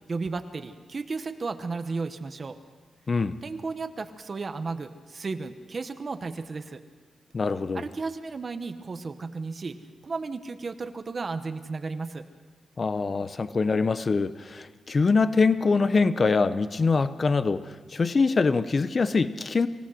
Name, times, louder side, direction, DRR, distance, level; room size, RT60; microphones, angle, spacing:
voice 1, 0.1-2.6 3.4-6.8 7.7-9.8 10.0-12.2, right 4 dB, 35° right, 8 dB, 0.9 m, -34 dB
voice 2, 7.3-7.8 12.8-19.7, left 4 dB, 35° left, 13 dB, 0.6 m, -24 dB
25.5 x 16.5 x 6.4 m, 1.4 s
wide cardioid pair, 145°, 0 cm